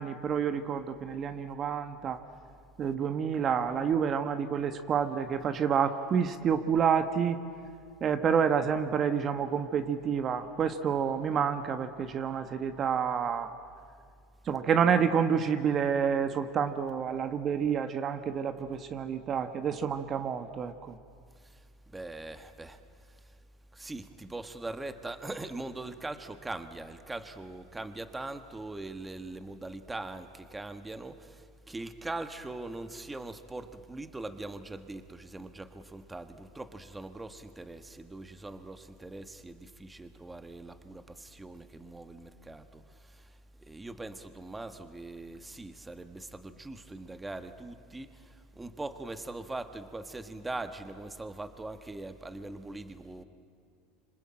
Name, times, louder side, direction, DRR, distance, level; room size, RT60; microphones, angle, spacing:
voice 1, 0.0-2.2 2.8-7.4 8.0-13.5 14.5-21.0, right 7 dB, 35° right, 9 dB, 1.2 m, -28 dB
voice 2, 21.4-22.8 23.1-23.3 23.7-53.2, right 2 dB, 10° right, 9 dB, 1.5 m, -41 dB
26.5 x 25.5 x 8.9 m, 2.2 s
supercardioid pair, 120°, 0 cm